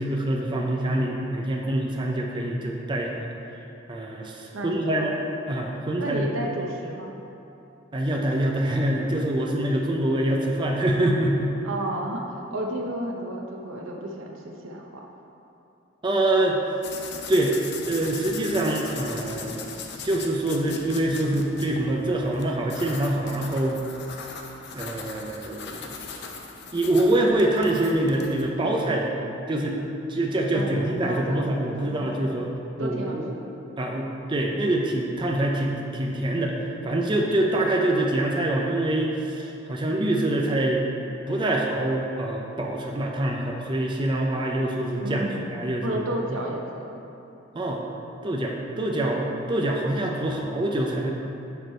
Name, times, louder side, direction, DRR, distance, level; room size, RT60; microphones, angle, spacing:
voice 1, 0.0-3.3 3.9-5.2 5.5-6.4 7.9-11.5 16.0-16.6 17.3-17.6 17.9-19.6 20.0-23.8 24.7-25.9 26.7-29.1 29.5-29.8 30.1-32.5 32.8-33.3 33.8-40.8 41.3-46.0 46.3-46.4 47.5-47.8 48.2-51.1, right 1 dB, 25° right, -1 dB, 0.5 m, -25 dB
voice 2, 4.5-5.1 6.0-7.2 11.6-15.0 30.5-31.5 31.8-32.3 32.8-33.5 45.0-47.0, right 1 dB, 85° right, 1 dB, 0.8 m, -32 dB
sound 1, 16.8-28.5, left 5 dB, 55° left, 0.6 m, -39 dB
6.1 x 5.1 x 4.3 m, 2.8 s
head